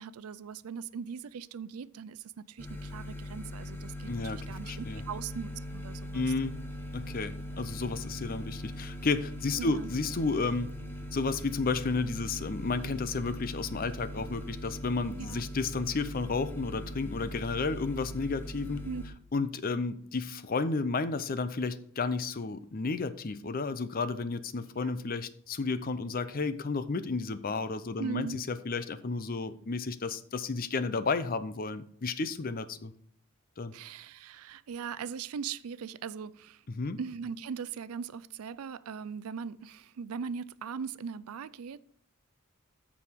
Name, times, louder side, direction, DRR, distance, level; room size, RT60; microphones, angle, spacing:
voice 1, 0.0-6.3 9.6-9.9 15.2-15.4 18.8-19.0 24.8-24.9 28.0-28.4 33.7-36.6 37.0-41.8, right 6 dB, 80° right, 0.4 m, -40 dB
sound 1, 2.6-19.1, equal, 10° left, 1.0 m, -40 dB
voice 2, 4.1-5.0 6.1-6.6 6.9-10.7 11.1-18.8 19.3-32.9 33.6-33.7 36.7-37.0, left 4 dB, 40° left, 0.6 m, -32 dB
14.0 x 4.9 x 3.6 m
head